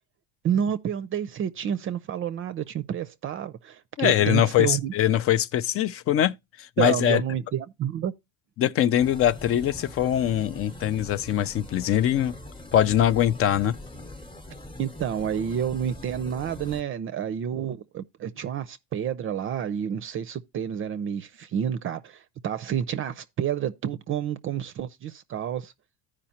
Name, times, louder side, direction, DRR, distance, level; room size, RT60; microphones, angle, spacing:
voice 1, 0.4-4.9 6.8-8.1 14.8-25.7, right 9 dB, 35° right, 0.5 m, -29 dB
voice 2, 4.0-7.2 8.6-12.3 12.7-13.8, left 11 dB, 40° left, 0.5 m, -22 dB
sound 1, 9.0-16.8, left 1 dB, 15° left, 0.9 m, -42 dB
14.5 x 5.0 x 2.8 m
supercardioid pair, 115°, 36 cm